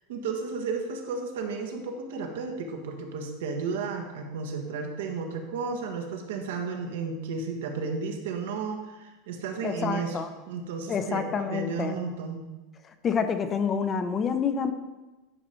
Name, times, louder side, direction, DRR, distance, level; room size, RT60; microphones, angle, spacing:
voice 1, 0.0-10.2 10.5-12.5, right 5 dB, 80° right, 3 dB, 1.4 m, -33 dB
voice 2, 9.6-10.3 10.9-12.0 13.0-14.7, left 6 dB, 25° left, 9 dB, 0.6 m, -28 dB
11.0 x 5.0 x 4.4 m, 1.1 s
supercardioid pair, 140°, 0 cm